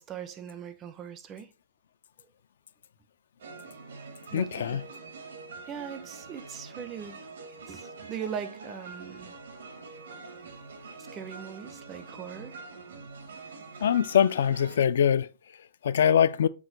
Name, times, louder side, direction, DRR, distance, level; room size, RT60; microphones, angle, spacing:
voice 1, 0.0-1.5 4.3-4.8 5.7-7.3 7.7-9.3 11.0-12.6, right 8 dB, 20° right, 0.4 m, -40 dB
sound 1, 3.4-14.8, right 4 dB, 85° right, 1.2 m, -45 dB
voice 2, 4.3-4.8 13.8-16.5, left 8 dB, 70° left, 0.3 m, -24 dB
6.0 x 2.2 x 3.8 m
hypercardioid pair, 165°, 0 cm